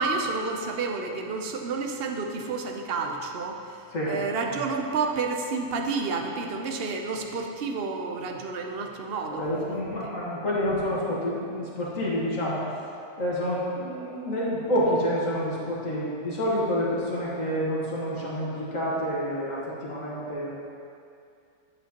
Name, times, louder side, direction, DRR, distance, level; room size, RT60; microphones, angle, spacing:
voice 1, 0.0-9.8, right 4 dB, 55° right, 3 dB, 0.7 m, -30 dB
voice 2, 9.3-12.7 13.2-20.5, equal, 55° left, -6 dB, 1.9 m, -28 dB
10.0 x 8.4 x 2.9 m, 2.4 s
omnidirectional pair, 1.6 m